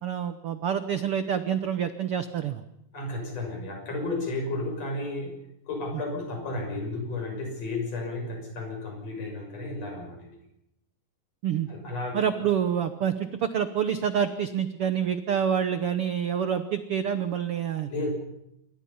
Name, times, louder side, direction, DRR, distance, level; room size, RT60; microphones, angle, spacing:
voice 1, 0.0-2.6 11.4-11.7 12.1-17.9, right 8 dB, 85° right, 9 dB, 1.2 m, -27 dB
voice 2, 2.9-5.4 5.7-10.3 11.7-12.4 17.8-18.1, left 2 dB, 45° left, 2 dB, 7.4 m, -33 dB
27.5 x 24.5 x 5.6 m, 0.81 s
omnidirectional pair, 4.1 m